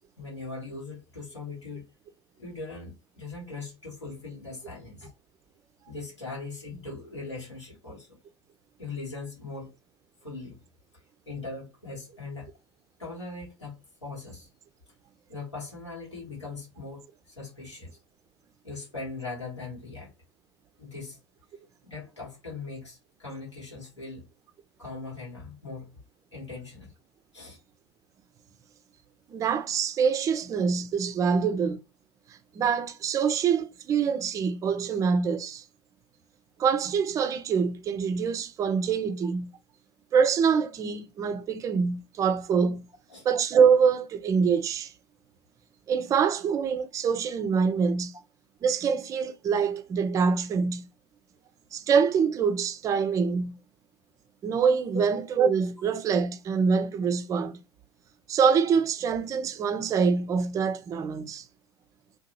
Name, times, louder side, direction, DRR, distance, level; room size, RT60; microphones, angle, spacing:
voice 1, 0.2-1.9 2.4-5.1 5.9-8.2 8.8-9.7 10.2-10.6 11.3-12.5 13.0-14.5 15.3-18.0 18.6-20.1 20.8-21.2 21.8-24.3 24.8-26.0 26.3-26.9 27.3-27.6 43.1-43.3 54.9-55.1, left 3 dB, 90° left, 1.2 m, -40 dB
voice 2, 29.3-31.8 32.6-35.6 36.6-39.5 40.1-42.8 43.2-44.9 45.9-48.1 48.6-50.9 51.7-53.6 54.4-57.6 58.3-61.4, right 6 dB, 25° right, 0.4 m, -25 dB
2.8 x 2.3 x 2.6 m
figure-of-eight pair, 80°, 15 cm